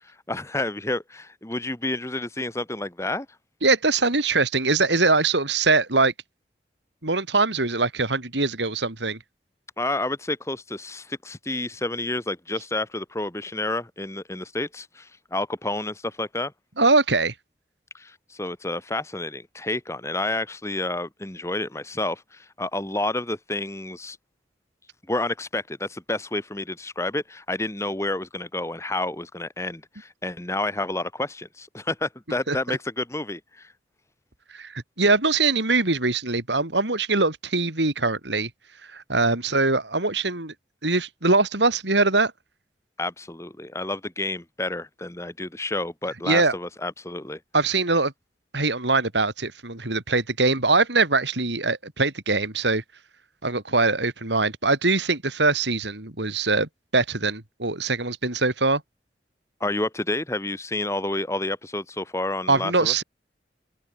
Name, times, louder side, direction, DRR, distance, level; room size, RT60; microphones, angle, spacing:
voice 1, 0.0-3.3 9.8-16.5 17.9-24.2 25.1-33.7 43.0-47.4 59.6-62.9, left 2 dB, 15° left, 1.6 m, -30 dB
voice 2, 3.6-6.1 7.0-9.2 16.8-17.3 32.5-32.8 34.5-38.5 38.9-40.5 40.8-42.3 46.3-46.5 47.5-48.1 48.5-52.8 53.4-58.8 62.5-63.0, right 3 dB, 80° right, 3.8 m, -22 dB
open air
head